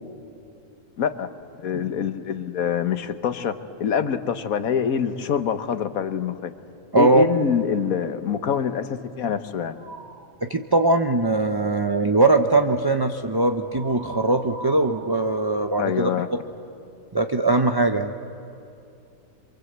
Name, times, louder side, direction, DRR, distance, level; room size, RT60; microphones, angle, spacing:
voice 1, 1.0-1.3 1.6-6.5 7.0-9.8 15.8-16.3, left 7 dB, 80° left, 10 dB, 1.5 m, -25 dB
voice 2, 6.9-7.2 10.4-16.1 17.1-18.1, right 2 dB, 25° right, 6 dB, 0.6 m, -21 dB
sound 1, 9.7-10.3 13.6-16.4, right 3 dB, 85° right, 1.9 m, -41 dB
27.5 x 23.5 x 8.1 m, 2.7 s
omnidirectional pair, 1.5 m